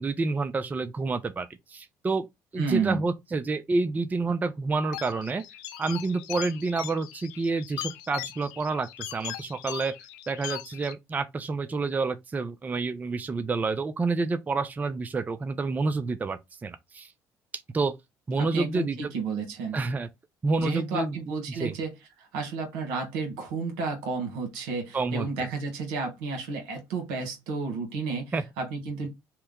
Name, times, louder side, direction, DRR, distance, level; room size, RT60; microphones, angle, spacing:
voice 1, 0.0-2.3 2.5-5.4 5.8-9.9 10.3-17.1 17.7-17.9 18.3-19.1 19.7-20.1 20.4-21.2 21.6-21.7 24.9-25.3 28.3-28.4, right 3 dB, 25° right, 0.4 m, -28 dB
voice 2, 2.6-3.0 18.4-19.8 20.6-29.1, right 4 dB, 90° right, 1.1 m, -32 dB
sound 1, 4.9-10.9, left 14 dB, 90° left, 0.3 m, -40 dB
2.9 x 2.1 x 3.5 m
supercardioid pair, 80°, 7 cm